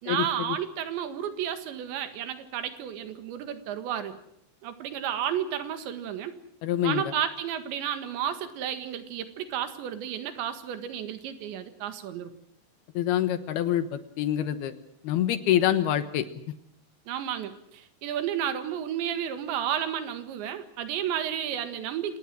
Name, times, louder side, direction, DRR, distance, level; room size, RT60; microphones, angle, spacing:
voice 1, 0.0-4.2 4.6-6.3 6.8-12.3 17.1-22.2, right 9 dB, 85° right, 10 dB, 4.0 m, -32 dB
voice 2, 6.6-7.0 12.9-14.7 15.0-16.3, left 11 dB, 70° left, 12 dB, 2.9 m, -26 dB
27.0 x 18.5 x 7.7 m, 0.70 s
omnidirectional pair, 5.0 m